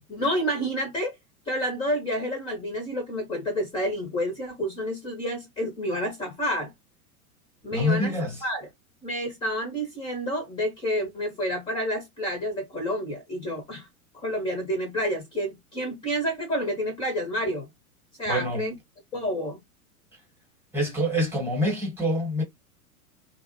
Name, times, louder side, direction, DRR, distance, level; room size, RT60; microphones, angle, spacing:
voice 1, 0.1-1.2 1.5-6.7 7.6-8.7 9.0-13.9 14.1-17.7 18.2-18.7 19.1-19.6, equal, 10° left, 0.7 m, -29 dB
voice 2, 7.7-8.3 18.3-18.7 20.7-22.4, left 1 dB, 5° right, 1.1 m, -26 dB
2.4 x 2.1 x 2.6 m
figure-of-eight pair, 90°, 44 cm